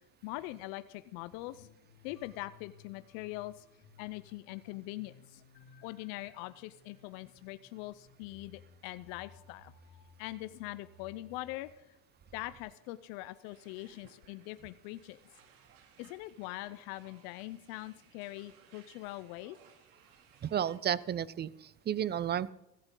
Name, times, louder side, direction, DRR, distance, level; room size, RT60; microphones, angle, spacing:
voice 1, 0.2-1.7 2.0-3.6 4.0-5.4 5.8-9.7 10.2-12.0 12.3-15.2 16.0-19.6, left 18 dB, 70° left, 14 dB, 0.7 m, -43 dB
sound 1, 1.3-11.7, left 5 dB, 55° left, 2.6 m, -60 dB
sound 2, 13.4-20.8, right 7 dB, 85° right, 2.9 m, -63 dB
voice 2, 20.4-22.5, right 9 dB, 25° right, 20 dB, 0.5 m, -32 dB
15.5 x 15.5 x 3.8 m, 0.92 s
supercardioid pair, 105°, 42 cm